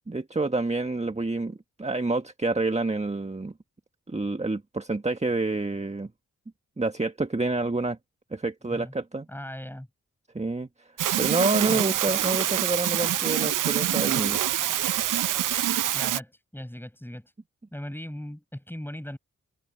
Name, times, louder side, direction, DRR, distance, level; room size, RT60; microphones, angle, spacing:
voice 1, 0.1-3.5 4.1-6.1 6.8-8.0 8.3-9.3 10.3-14.4, right 3 dB, 20° right, 1.6 m, -28 dB
voice 2, 9.3-9.9 11.7-11.8 15.9-17.3 17.7-19.2, equal, 5° left, 6.4 m, -38 dB
sound 1, 11.0-16.2, right 12 dB, 70° right, 0.6 m, -25 dB
supercardioid pair, 40°, 33 cm